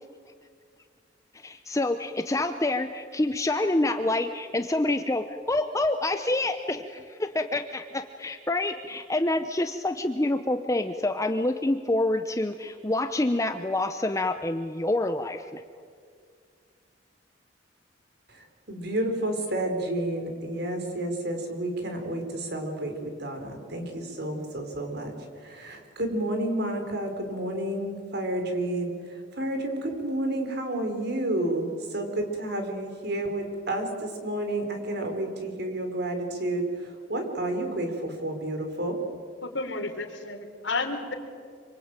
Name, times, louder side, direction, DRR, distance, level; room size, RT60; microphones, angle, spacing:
voice 1, 1.3-15.6, left 2 dB, 15° left, 8 dB, 0.8 m, -27 dB
voice 2, 18.3-39.0, right 1 dB, 60° right, 5 dB, 4.5 m, -30 dB
voice 3, 39.4-41.1, left 3 dB, 85° left, 4 dB, 3.8 m, -31 dB
26.5 x 24.5 x 9.0 m, 2.1 s
head